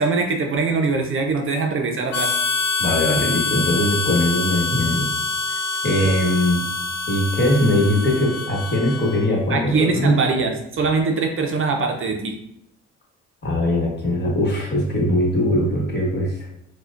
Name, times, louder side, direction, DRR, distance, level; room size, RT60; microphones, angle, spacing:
voice 1, 0.0-2.3 6.0-6.2 9.5-12.4, right 4 dB, 45° right, 3 dB, 0.5 m, -22 dB
Harmonica, 2.1-9.4, left 4 dB, 60° left, 0.5 m, -25 dB
voice 2, 2.8-5.1 5.5-6.7 7.1-10.2 13.4-16.5, left 1 dB, 35° left, -2 dB, 1.2 m, -21 dB
4.7 x 2.2 x 2.4 m, 0.78 s
cardioid pair, 90°, 30 cm